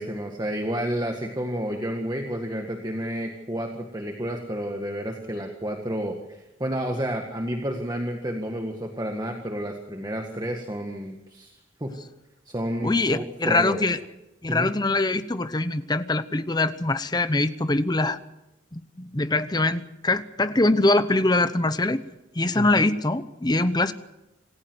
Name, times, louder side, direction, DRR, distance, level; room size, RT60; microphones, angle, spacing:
voice 1, 0.0-11.9 12.4-13.8 14.5-14.7 22.5-22.6, equal, 20° right, 3 dB, 1.8 m, -30 dB
voice 2, 12.8-14.0 14.4-18.2 18.7-22.0 22.3-23.9, left 2 dB, 20° left, 12 dB, 0.9 m, -23 dB
27.0 x 15.5 x 8.0 m, 0.96 s
head